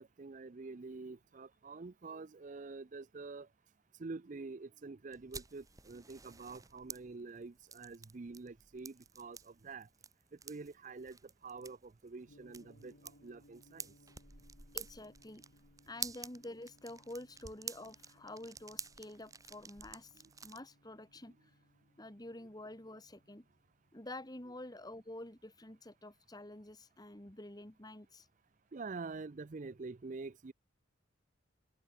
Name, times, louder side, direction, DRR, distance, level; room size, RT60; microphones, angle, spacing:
voice 1, 0.0-3.5 4.0-9.9 10.4-13.9 20.2-20.3 28.7-30.5, right 4 dB, 40° right, 0.5 m, -47 dB
sound 1, 5.1-20.6, right 6 dB, 20° right, 1.8 m, -50 dB
Gong, 12.3-26.4, left 1 dB, 70° left, 2.7 m, -67 dB
voice 2, 14.7-15.4 15.9-21.6 22.0-23.4 23.9-28.3, left 1 dB, 20° left, 2.2 m, -49 dB
head